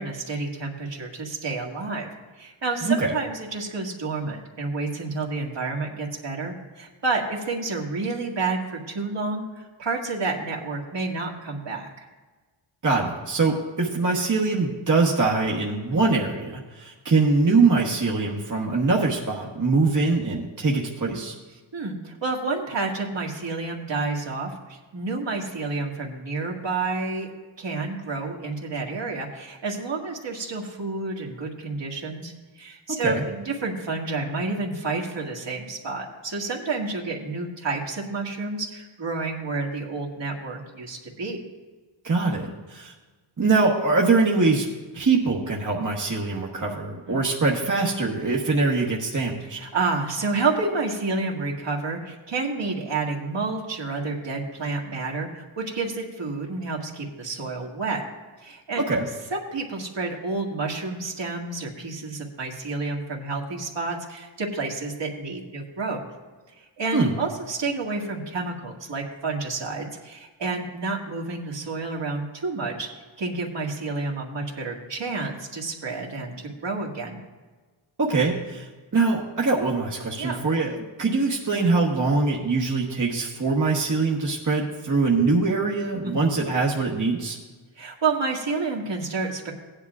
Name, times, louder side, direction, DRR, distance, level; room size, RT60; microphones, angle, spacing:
voice 1, 0.0-2.1 2.4-12.1 15.9-16.0 21.7-27.3 27.6-41.4 47.1-47.2 49.5-58.0 58.4-58.9 59.3-66.1 66.6-72.9 73.2-77.2 80.2-80.4 86.0-86.4 87.8-89.5, right 3 dB, 60° right, -1 dB, 1.9 m, -30 dB
voice 2, 12.8-21.3 32.9-33.2 42.0-42.9 43.4-44.7 44.9-49.6 58.8-59.1 66.9-67.1 78.0-78.7 78.9-87.4, right 3 dB, 40° right, -3 dB, 1.2 m, -23 dB
16.5 x 10.0 x 2.4 m, 1.3 s
wide cardioid pair, 85°, 49 cm